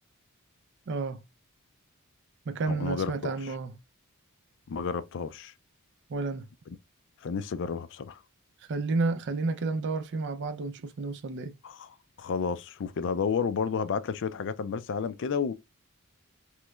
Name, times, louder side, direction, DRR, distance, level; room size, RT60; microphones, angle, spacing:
voice 1, 0.9-1.2 2.5-3.7 6.1-6.5 8.7-11.5, right 3 dB, 55° right, 0.4 m, -31 dB
voice 2, 2.7-3.5 4.7-5.5 6.7-6.8 7.2-8.2 11.6-15.5, left 6 dB, 55° left, 0.4 m, -31 dB
3.1 x 3.0 x 2.3 m
head